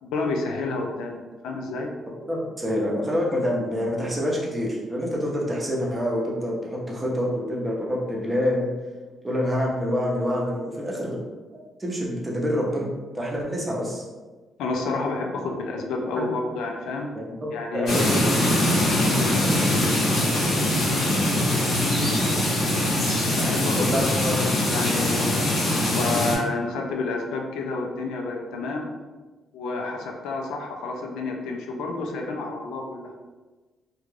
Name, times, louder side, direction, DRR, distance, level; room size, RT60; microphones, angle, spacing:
voice 1, 0.0-1.9 14.6-17.1 17.5-18.0 23.3-24.0 24.3-25.4 25.9-28.9 29.5-33.1, left 3 dB, 90° left, 2 dB, 0.4 m, -30 dB
voice 2, 2.3-8.7 9.2-11.2 11.8-12.9 13.1-14.0 16.1-16.3 17.1-17.2 17.7-18.4 23.7-24.4, equal, 20° right, -3 dB, 0.7 m, -26 dB
sound 1, 17.9-26.4, left 1 dB, 70° left, 0.9 m, -22 dB
2.4 x 2.2 x 3.2 m, 1.3 s
cardioid pair, 90°, 0 cm